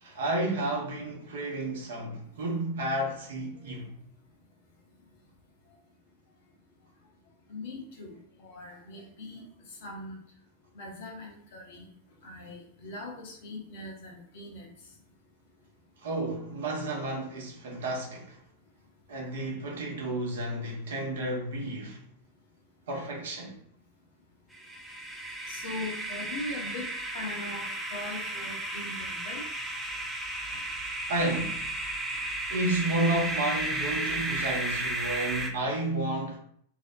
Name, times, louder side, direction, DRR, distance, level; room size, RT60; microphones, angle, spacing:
voice 1, 0.0-3.9 16.0-18.4 19.1-22.0 22.9-23.6 30.5-30.6 31.1-31.7 32.5-36.4, right 1 dB, 60° right, 0.7 m, -31 dB
voice 2, 7.5-8.1 8.4-9.4 9.8-10.2 10.7-11.8 12.2-14.7 25.5-26.9 27.1-29.4, left 2 dB, 55° left, 0.7 m, -40 dB
sound 1, 24.5-35.5, right 2 dB, 10° right, 0.4 m, -34 dB
2.5 x 2.0 x 2.5 m
figure-of-eight pair, 90°, 0 cm